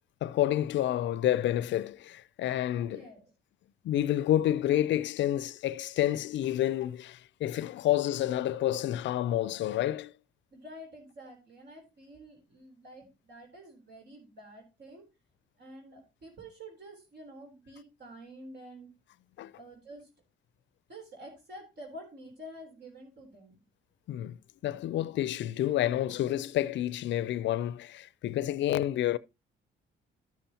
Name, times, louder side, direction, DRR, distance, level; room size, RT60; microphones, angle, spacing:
voice 1, 0.2-3.1 3.8-10.1 19.4-19.5 24.1-24.4 24.6-29.2, left 12 dB, 70° left, 0.5 m, -29 dB
voice 2, 2.8-3.3 10.5-15.0 15.6-18.9 19.6-20.1 20.9-23.6, right 1 dB, 60° right, 3.7 m, -49 dB
12.0 x 6.9 x 2.9 m
cardioid pair, 90°, 20 cm